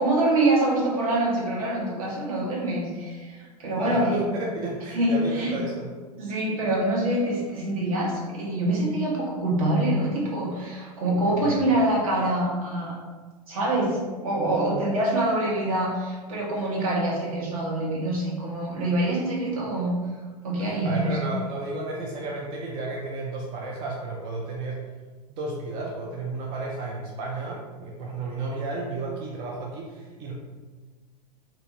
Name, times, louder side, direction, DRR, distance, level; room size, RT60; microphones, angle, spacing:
voice 1, 0.0-4.2 4.9-5.6 6.2-12.9 13.5-20.0 20.4-21.2, right 1 dB, 55° right, -4 dB, 1.0 m, -25 dB
voice 2, 3.8-5.9 11.4-11.7 20.6-24.8 25.3-30.3, right 2 dB, 25° right, -3 dB, 0.3 m, -32 dB
2.6 x 2.5 x 2.7 m, 1.4 s
figure-of-eight pair, 95°, 21 cm